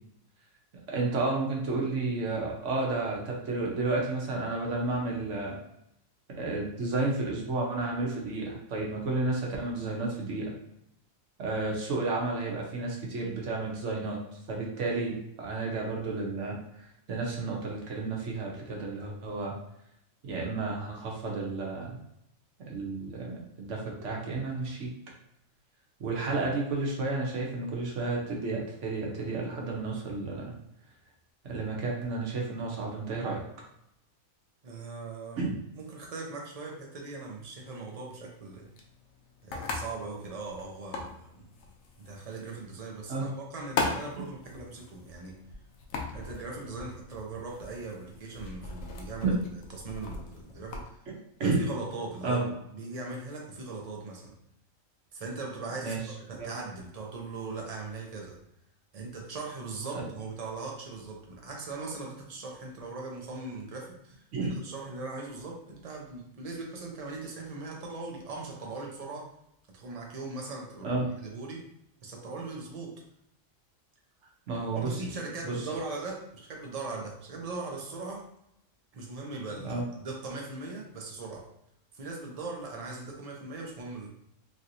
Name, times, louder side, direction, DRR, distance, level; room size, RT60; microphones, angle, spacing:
voice 1, 0.9-5.6 6.3-10.5 11.4-14.2 14.5-19.5 20.2-22.0 22.7-24.9 26.0-30.5 31.4-33.5 35.4-35.5 43.1-43.3 49.2-49.4 51.4-51.6 52.2-52.4 55.8-56.0 56.4-56.6 59.9-60.0 64.3-64.6 70.8-71.1 74.5-75.0 75.4-75.7 79.6-79.8, right 3 dB, 65° right, -2 dB, 1.1 m, -31 dB
voice 2, 34.6-35.4 35.7-38.7 39.4-41.5 42.0-45.4 46.1-49.4 49.7-51.0 51.4-54.4 55.1-58.4 58.9-64.2 64.5-69.3 69.7-71.7 72.0-73.0 74.7-78.3 78.9-81.5 81.9-84.1, right 3 dB, 45° right, 0 dB, 0.5 m, -39 dB
sound 1, 38.4-50.9, left 3 dB, 75° left, 0.9 m, -39 dB
3.1 x 2.8 x 2.6 m, 0.77 s
omnidirectional pair, 1.4 m